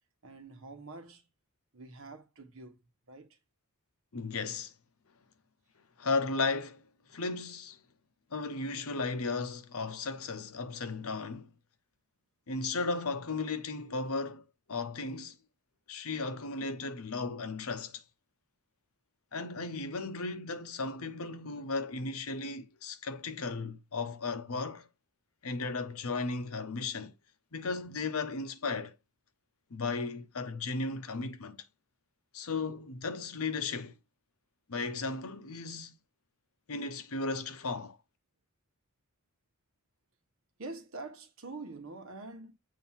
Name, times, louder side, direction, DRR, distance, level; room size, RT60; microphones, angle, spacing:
voice 1, 0.2-1.2 1.7-2.8 3.1-3.3 40.6-42.5, right 3 dB, 65° right, 1.2 m, -45 dB
voice 2, 4.1-4.7 6.0-6.8 7.1-7.8 8.3-11.5 12.5-15.4 15.9-18.0 19.3-24.9 25.4-27.1 27.5-29.0 29.7-31.6 32.3-33.9 34.7-35.9 36.7-38.0, left 3 dB, 80° left, 0.9 m, -35 dB
7.6 x 2.7 x 5.7 m
head